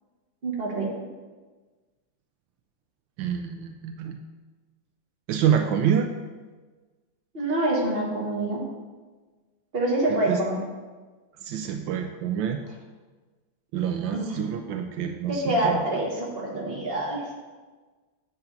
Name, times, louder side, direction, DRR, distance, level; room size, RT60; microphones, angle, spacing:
voice 1, 0.4-0.9 7.3-8.6 9.7-10.6 14.1-14.6 15.3-17.2, right 1 dB, 30° right, -2 dB, 1.6 m, -26 dB
voice 2, 3.2-4.2 5.3-6.1 10.1-10.4 11.4-12.6 13.7-15.8, right 8 dB, 80° right, 5 dB, 1.3 m, -27 dB
8.0 x 4.1 x 6.8 m, 1.3 s
omnidirectional pair, 2.1 m